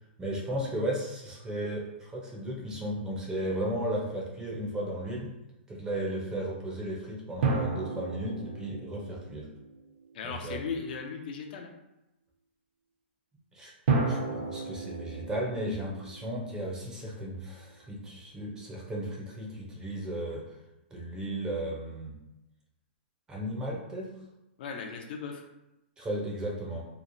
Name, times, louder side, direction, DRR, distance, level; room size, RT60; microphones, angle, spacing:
voice 1, 0.2-5.3 5.7-9.5 10.2-10.6 13.5-20.4 20.9-22.1 23.3-24.2 26.0-26.9, right 1 dB, 10° right, -3 dB, 0.5 m, -35 dB
sound 1, 7.4-10.3 13.9-17.2, right 4 dB, 55° right, 0.6 m, -33 dB
voice 2, 10.1-11.7 24.6-25.4, left 5 dB, 50° left, 3 dB, 0.4 m, -37 dB
2.9 x 2.0 x 2.5 m, 0.92 s
hypercardioid pair, 150°, 6 cm